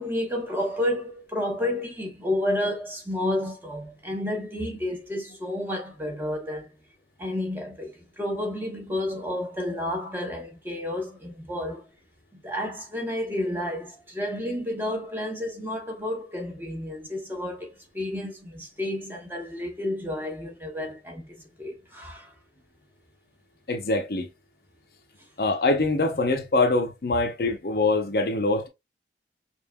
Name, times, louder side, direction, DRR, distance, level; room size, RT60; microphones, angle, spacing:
voice 1, 0.0-6.7 7.2-11.8 12.3-17.7 17.9-21.3 21.6-22.3, left 1 dB, 10° right, 1.0 m, -31 dB
voice 2, 23.7-24.3 25.4-28.7, left 2 dB, 60° left, 0.7 m, -24 dB
5.5 x 2.5 x 2.2 m
head